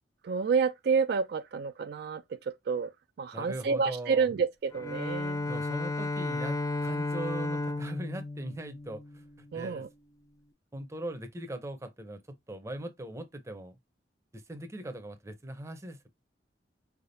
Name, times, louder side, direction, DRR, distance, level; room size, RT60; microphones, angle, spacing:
voice 1, 0.2-2.2 2.7-2.9 3.2-4.5 4.7-5.5 9.5-9.9, right 5 dB, 60° right, 0.3 m, -29 dB
voice 2, 3.3-4.3 5.5-9.9 10.7-13.8 14.3-16.1, right 1 dB, 15° right, 0.6 m, -40 dB
Bowed string instrument, 4.7-9.7, left 2 dB, 20° left, 0.3 m, -34 dB
4.6 x 3.4 x 2.6 m
head